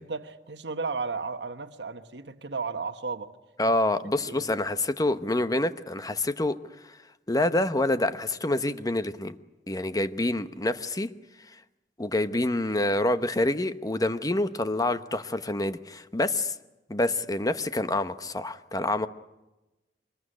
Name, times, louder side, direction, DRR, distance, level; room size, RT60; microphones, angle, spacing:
voice 1, 0.0-3.3 4.2-4.4, right 4 dB, 75° right, 1.2 m, -34 dB
voice 2, 3.6-6.6 7.3-9.4 9.7-11.1 12.0-16.5 16.9-19.1, left 2 dB, 20° left, 0.9 m, -27 dB
23.5 x 21.0 x 10.0 m
head